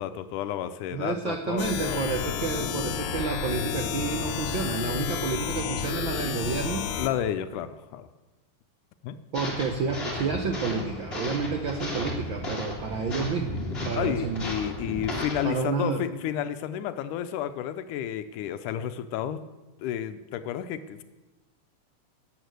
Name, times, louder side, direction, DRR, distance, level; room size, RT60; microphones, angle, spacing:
voice 1, 0.0-2.0 7.0-8.1 9.0-9.2 14.0-19.4 19.8-21.0, left 10 dB, 85° left, 11 dB, 2.2 m, -31 dB
voice 2, 0.9-6.9 9.3-14.5 15.4-16.0, right 5 dB, 90° right, 5 dB, 1.0 m, -30 dB
sound 1, 1.6-7.1, left 7 dB, 70° left, 2.0 m, -31 dB
sound 2, 9.3-15.4, left 2 dB, 20° left, 2.3 m, -34 dB
12.5 x 8.9 x 8.1 m, 1.2 s
omnidirectional pair, 3.5 m